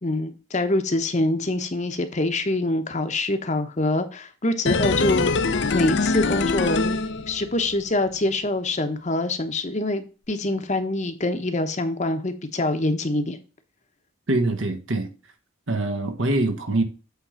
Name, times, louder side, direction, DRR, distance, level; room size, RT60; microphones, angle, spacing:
voice 1, 0.0-7.0 7.3-13.4, left 2 dB, 35° left, 0.9 m, -25 dB
sound 1, 4.7-7.8 8.1-8.2, left 4 dB, 55° left, 0.6 m, -24 dB
voice 2, 14.3-15.1 15.7-16.8, right 2 dB, 65° right, 1.2 m, -24 dB
8.2 x 3.7 x 5.5 m
head